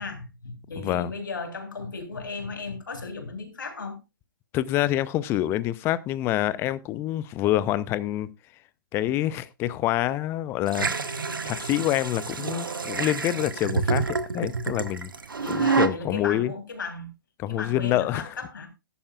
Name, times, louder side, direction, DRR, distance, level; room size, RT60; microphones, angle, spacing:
voice 1, 0.0-4.0 15.4-17.1 17.5-18.7, left 3 dB, 65° left, 3.3 m, -36 dB
voice 2, 0.8-1.1 4.5-8.3 8.9-15.1 15.5-16.5 17.4-18.4, left 14 dB, 20° left, 0.6 m, -27 dB
sound 1, 10.7-15.9, right 5 dB, 70° right, 1.2 m, -28 dB
14.0 x 11.5 x 2.4 m
figure-of-eight pair, 120°, 11 cm